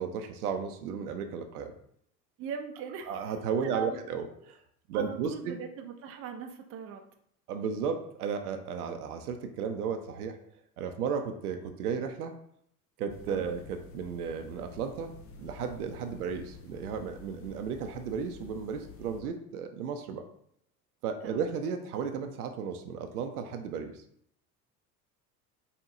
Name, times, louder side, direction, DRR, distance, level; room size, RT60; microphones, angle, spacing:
voice 1, 0.0-1.7 3.1-4.6 4.9-5.6 7.5-10.4 10.8-12.3 13.0-15.1 15.4-20.2 21.0-23.9, right 6 dB, 75° right, 7 dB, 0.6 m, -34 dB
voice 2, 2.4-3.3 3.6-4.0 4.9-7.0 13.3-13.5 21.2-21.4, right 6 dB, 30° right, 5 dB, 0.5 m, -40 dB
sound 1, 13.1-19.2, left 4 dB, 30° left, 0.6 m, -50 dB
4.2 x 3.5 x 2.5 m, 0.68 s
figure-of-eight pair, 65°, 46 cm